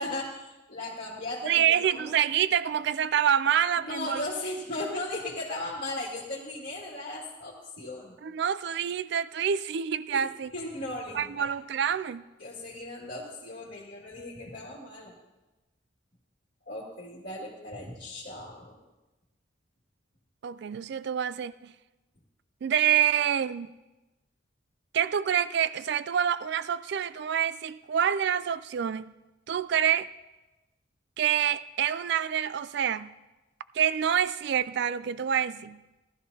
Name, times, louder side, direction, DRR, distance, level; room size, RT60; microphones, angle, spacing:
voice 1, 0.0-2.2 3.8-8.2 10.1-11.5 12.4-15.2 16.7-18.8, left 1 dB, 50° left, 2.1 m, -37 dB
voice 2, 1.5-4.2 8.2-10.5 11.1-12.2 20.4-21.7 22.6-23.7 24.9-29.1 29.5-30.1 31.2-33.1 33.7-35.8, right 9 dB, 60° right, 0.3 m, -27 dB
18.0 x 13.0 x 2.8 m
head